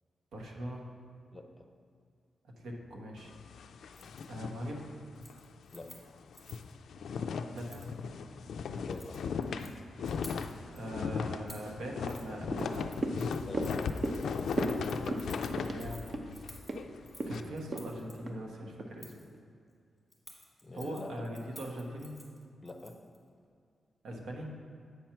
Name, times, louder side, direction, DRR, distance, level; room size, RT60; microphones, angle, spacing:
voice 1, 0.3-0.9 2.4-3.3 4.3-4.9 7.4-7.9 10.7-12.9 15.2-16.1 17.3-19.1 20.7-22.1 24.0-24.5, right 1 dB, 90° right, 0 dB, 1.1 m, -41 dB
voice 2, 1.3-1.7 5.7-5.9 8.7-9.3 13.5-14.0 20.6-21.1 22.6-22.9, left 2 dB, 20° left, 4 dB, 0.6 m, -45 dB
sound 1, 3.2-5.4 5.8-5.9 6.2-17.4, left 5 dB, 80° left, 0.3 m, -38 dB
Keys jangling, 3.9-4.2 4.6-4.9 5.2-6.7 7.6-7.9 8.8-9.7 10.0-10.8 11.5-11.7 12.1-12.3 12.6-18.1 19.0-19.3 20.1-23.2 23.5-23.6, left 1 dB, 5° left, 1.4 m, -53 dB
sound 2, 12.5-19.0 19.3-19.4, right 2 dB, 40° right, 0.7 m, -37 dB
8.1 x 4.4 x 5.7 m, 2.3 s
wide cardioid pair, 120°, 0 cm